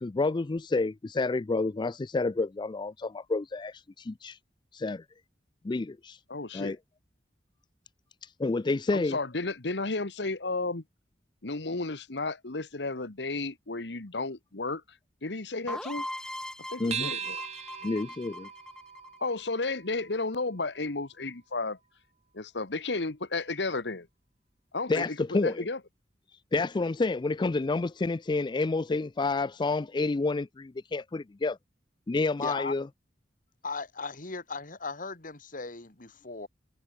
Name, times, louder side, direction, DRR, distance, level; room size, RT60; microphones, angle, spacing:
voice 1, 0.0-4.4 4.7-5.0 5.6-6.2 6.5-6.8 8.2-9.2 16.8-17.1 17.8-18.5 24.9-25.6 26.5-31.6 32.1-32.9, left 3 dB, 25° left, 0.4 m, -29 dB
voice 2, 6.3-6.7 8.9-10.8 11.4-14.8 15.2-16.1 16.7-17.4 19.2-21.8 22.3-24.1 24.7-25.2 25.4-25.8, left 3 dB, 80° left, 1.6 m, -33 dB
sound 1, 15.7-19.4, left 1 dB, 5° left, 1.4 m, -40 dB
sound 2, 16.9-21.7, right 7 dB, 40° right, 1.5 m, -40 dB
voice 3, 32.4-32.7 33.6-36.5, left 3 dB, 50° left, 2.7 m, -37 dB
head